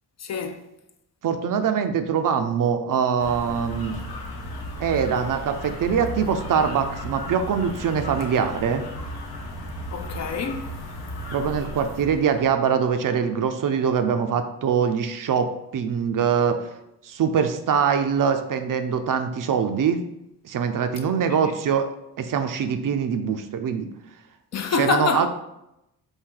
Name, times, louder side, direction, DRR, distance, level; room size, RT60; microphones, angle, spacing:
voice 1, 0.2-0.6 9.9-10.7 21.3-21.5 24.5-25.3, left 5 dB, 45° left, 0.5 m, -26 dB
voice 2, 1.2-4.0 4.8-8.8 11.3-16.6 17.0-20.0 20.4-21.9 22.2-23.9 24.8-25.3, right 7 dB, 60° right, 0.5 m, -23 dB
sound 1, 3.2-12.5, left 1 dB, 75° left, 0.9 m, -35 dB
4.4 x 2.7 x 3.8 m
cardioid pair, 80°, 38 cm